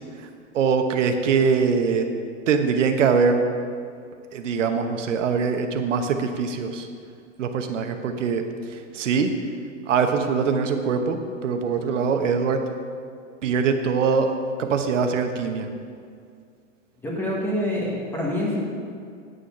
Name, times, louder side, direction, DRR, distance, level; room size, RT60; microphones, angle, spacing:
voice 1, 0.5-2.1 2.5-3.4 4.3-6.9 7.4-8.4 8.9-9.3 9.9-12.6 13.4-14.3 14.6-15.7, right 5 dB, 70° right, 6 dB, 1.1 m, -22 dB
voice 2, 17.0-18.6, left 1 dB, 5° left, -4 dB, 1.2 m, -26 dB
9.3 x 6.5 x 5.6 m, 2.2 s
hypercardioid pair, 160°, 38 cm